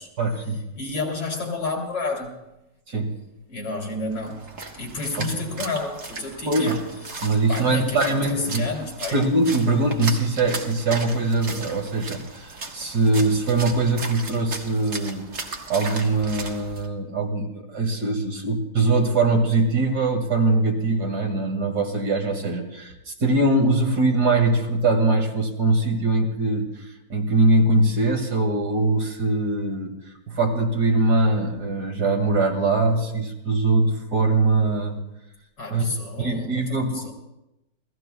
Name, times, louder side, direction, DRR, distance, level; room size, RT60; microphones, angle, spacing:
voice 1, 0.2-0.6 2.9-3.1 5.2-5.5 6.5-6.8 7.2-8.7 9.1-15.2 15.7-26.7 27.1-30.0 30.3-35.0 35.7-35.9 36.2-37.1, right 2 dB, 65° right, 2 dB, 2.5 m, -22 dB
voice 2, 0.8-2.4 3.5-4.5 4.7-6.8 7.5-9.3 35.6-37.1, left 3 dB, 85° left, 0 dB, 3.6 m, -30 dB
Splash splatter, 4.1-16.9, right 3 dB, 50° right, 1.7 m, -36 dB
28.0 x 17.5 x 2.2 m, 0.94 s
omnidirectional pair, 1.9 m